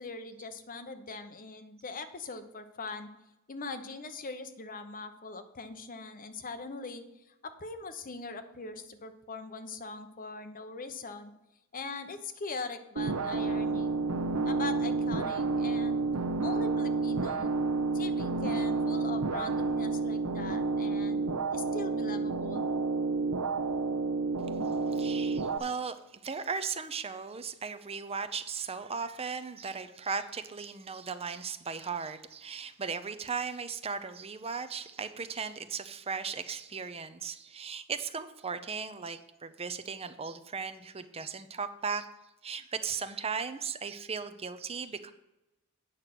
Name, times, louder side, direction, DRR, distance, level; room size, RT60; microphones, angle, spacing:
voice 1, 0.0-3.1 3.5-11.3 11.7-13.9 14.4-16.0 16.4-17.6 17.9-21.2 21.5-22.7, left 3 dB, 40° left, 9 dB, 0.9 m, -41 dB
sound 1, 13.0-25.6, right 3 dB, 75° right, 0.7 m, -30 dB
voice 2, 24.9-42.1 42.4-45.1, right 5 dB, 25° right, 11 dB, 0.6 m, -37 dB
9.0 x 6.5 x 5.9 m, 0.93 s
head